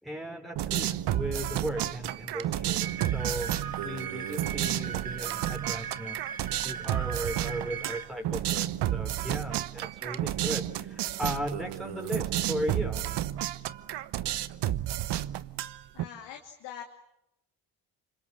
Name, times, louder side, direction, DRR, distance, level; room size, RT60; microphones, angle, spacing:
voice 1, 0.0-13.0, equal, ahead, 2 dB, 4.3 m, -37 dB
sound 1, 0.6-16.0, right 13 dB, 70° right, 1.2 m, -31 dB
sound 2, 2.8-8.1, right 8 dB, 55° right, 1.8 m, -39 dB
voice 2, 15.9-16.8, left 9 dB, 85° left, 3 dB, 2.7 m, -43 dB
29.5 x 26.0 x 7.4 m, 0.83 s
supercardioid pair, 55°, 43 cm